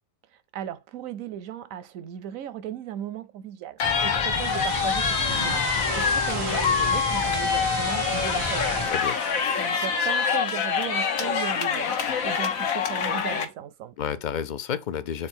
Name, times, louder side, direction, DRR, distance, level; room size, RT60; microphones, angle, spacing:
voice 1, 0.5-8.9 9.6-14.0, right 10 dB, 85° right, 1.1 m, -36 dB
sound 1, 3.8-13.4, left 6 dB, 90° left, 1.4 m, -25 dB
sound 2, 3.8-8.9, left 1 dB, 25° left, 0.7 m, -34 dB
sound 3, 4.3-12.4, right 10 dB, 65° right, 0.7 m, -37 dB
voice 2, 5.2-5.5 8.8-9.2 14.0-15.3, left 8 dB, 65° left, 0.4 m, -31 dB
7.8 x 3.8 x 4.3 m
omnidirectional pair, 1.4 m